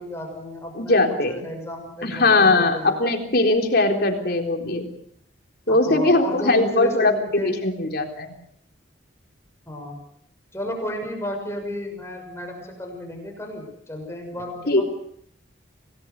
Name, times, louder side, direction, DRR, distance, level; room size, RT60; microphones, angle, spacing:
voice 1, 0.0-3.0 5.7-7.5 9.7-10.0 10.5-14.8, left 1 dB, 15° left, 2 dB, 6.3 m, -33 dB
voice 2, 0.8-1.3 2.0-4.9 5.7-7.1 7.4-8.3 14.7-14.8, left 2 dB, 55° left, 4 dB, 3.8 m, -20 dB
27.0 x 18.5 x 6.6 m, 0.70 s
head